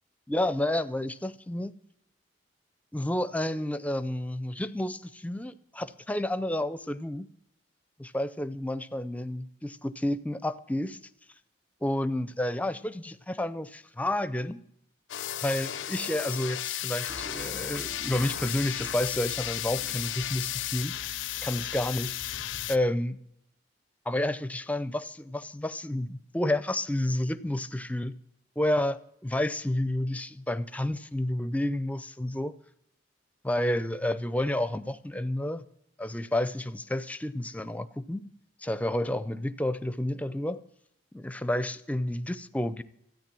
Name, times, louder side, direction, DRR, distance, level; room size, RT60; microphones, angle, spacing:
voice 1, 0.3-1.7 2.9-7.3 8.0-11.0 11.8-14.6 15.4-20.9 21.4-22.2 22.7-23.2 24.1-28.2 28.6-32.6 33.4-35.6 36.0-38.3 38.6-40.6 41.1-42.8, left 1 dB, 10° left, 13 dB, 0.4 m, -30 dB
sound 1, 15.1-22.8, left 12 dB, 90° left, 0.5 m, -34 dB
Toilet flush, 17.1-22.7, equal, 90° right, 2.5 m, -47 dB
13.5 x 9.1 x 7.5 m, 0.75 s
head